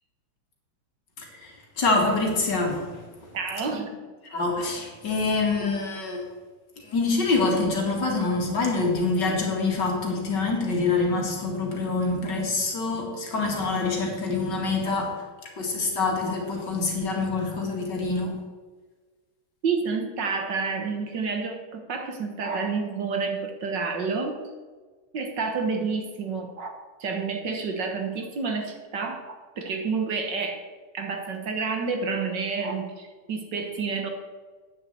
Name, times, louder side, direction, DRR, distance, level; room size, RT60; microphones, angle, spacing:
voice 1, 1.2-3.0 4.2-6.2 6.8-15.2 15.6-18.3, left 3 dB, 55° left, 0 dB, 2.8 m, -26 dB
voice 2, 3.3-3.9 19.6-24.4 25.1-26.7 27.0-29.2 29.6-30.6 30.9-34.1, right 4 dB, 60° right, 4 dB, 1.9 m, -29 dB
9.4 x 7.3 x 7.8 m, 1.4 s
omnidirectional pair, 2.3 m